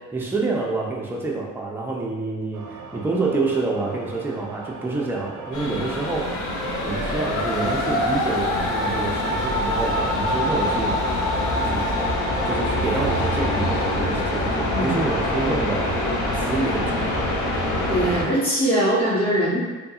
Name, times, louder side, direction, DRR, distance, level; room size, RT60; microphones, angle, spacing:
voice 1, 0.1-6.4 6.8-11.0 11.6-11.9 12.4-15.9 16.3-17.4, right 3 dB, 5° right, -3 dB, 0.5 m, -27 dB
sound 1, 2.5-11.7, right 4 dB, 65° right, 0.5 m, -40 dB
sound 2, 5.5-18.2, left 1 dB, 80° left, 0.6 m, -24 dB
voice 2, 17.9-19.6, right 1 dB, 20° left, -10 dB, 0.8 m, -21 dB
2.7 x 2.6 x 2.4 m, 1.3 s
cardioid pair, 90°, 30 cm